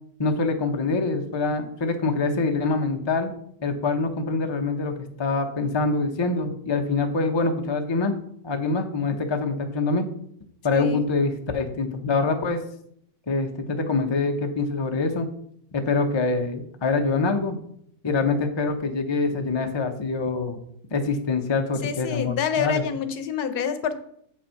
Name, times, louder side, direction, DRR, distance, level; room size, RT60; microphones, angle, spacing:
voice 1, 0.2-3.3 3.6-8.1 8.4-10.0 10.6-12.6 13.3-15.3 15.7-17.6 18.0-20.6 20.9-22.8, left 3 dB, 30° left, 5 dB, 0.5 m, -25 dB
voice 2, 10.7-11.1 21.8-24.0, left 7 dB, 70° left, 11 dB, 1.2 m, -27 dB
7.5 x 5.7 x 5.7 m, 0.69 s
omnidirectional pair, 1.9 m